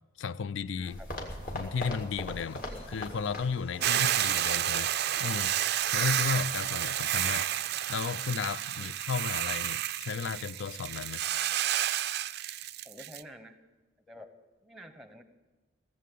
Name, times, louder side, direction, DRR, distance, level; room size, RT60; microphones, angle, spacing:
voice 1, 0.2-1.0 1.5-2.6 2.9-4.9 5.2-5.5 5.9-7.5 7.9-11.2, left 5 dB, 60° left, 0.4 m, -34 dB
sound 1, 0.8-3.9 4.2-4.3 4.9-5.0, left 1 dB, 45° left, 2.1 m, -39 dB
voice 2, 0.8-1.1 2.4-2.8 3.7-4.1 8.8-8.9 12.8-13.6 14.1-14.3 14.6-15.2, equal, ahead, 0.9 m, -50 dB
sound 2, 2.2-8.0, left 2 dB, 25° left, 1.2 m, -57 dB
Hiss / Boiling, 3.8-13.2, right 12 dB, 50° right, 0.4 m, -30 dB
17.0 x 7.6 x 8.4 m
head